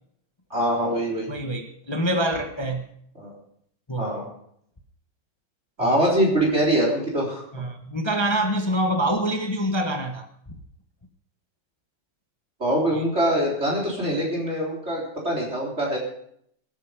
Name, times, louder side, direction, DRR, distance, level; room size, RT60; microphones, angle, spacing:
voice 1, 0.5-1.3 3.2-3.3 4.0-4.3 5.8-7.4 12.6-16.0, right 1 dB, 30° right, 4.3 m, -23 dB
voice 2, 1.3-2.8 3.9-4.1 5.8-6.0 7.5-10.3, right 1 dB, 15° left, 1.1 m, -25 dB
23.5 x 9.4 x 5.1 m
omnidirectional pair, 2.2 m